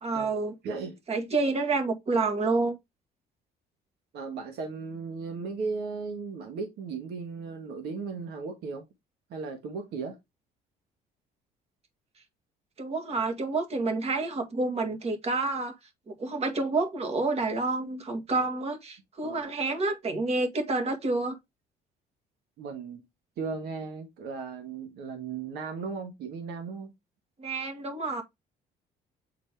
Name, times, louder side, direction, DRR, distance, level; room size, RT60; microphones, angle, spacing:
voice 1, 0.0-0.5 1.1-2.8 12.8-15.8 16.1-21.4 27.4-28.2, right 3 dB, 40° right, 1.9 m, -29 dB
voice 2, 0.6-1.0 4.1-8.9 9.3-10.2 18.3-18.5 19.2-19.4 22.6-23.0 23.4-26.9, right 4 dB, 75° right, 1.6 m, -36 dB
8.3 x 4.1 x 3.5 m
cardioid pair, 110°, 17 cm